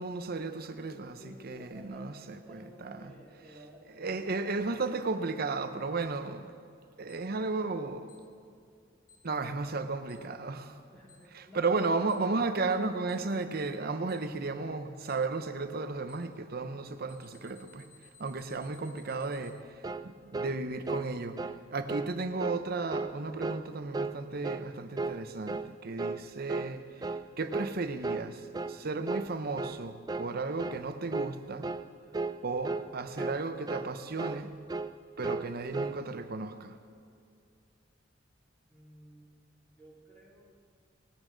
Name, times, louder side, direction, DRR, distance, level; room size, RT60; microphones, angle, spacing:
voice 1, 0.0-3.1 3.9-6.5 7.0-8.1 9.2-10.8 11.3-17.9 18.2-31.7 32.4-34.5 35.2-36.8, right 3 dB, 55° right, 0.8 m, -34 dB
voice 2, 1.2-4.3 10.9-12.2 38.7-39.4 39.7-40.5, left 1 dB, 10° left, 2.8 m, -52 dB
Alarm, 7.1-7.2 8.1-8.2 9.1-9.2 10.1-10.2 11.1-11.2 12.1-12.2 13.1-13.2 14.1-14.2 15.1-15.2 16.1-16.2 17.1-19.5, left 6 dB, 50° left, 2.0 m, -58 dB
sound 1, 19.8-20.1 20.3-20.6 20.9-21.1 21.4-21.6 21.9-22.1 22.4-22.6 22.9-23.1 23.4-23.6 23.9-24.2 24.4-24.7 25.0-25.2 25.5-25.7 26.0-26.2 26.5-26.7 27.0-27.3 27.5-27.7 28.0-28.3 28.5-28.8 29.1-29.3 29.6-29.8 30.1-30.3 30.6-30.8 31.1-31.3 31.6-31.9 32.1-32.4 32.6-32.9 33.2-33.4 33.7-33.9 34.2-34.4 34.7-34.9 35.2-36.0, right 3 dB, 20° right, 0.4 m, -34 dB
19.0 x 12.5 x 3.9 m
head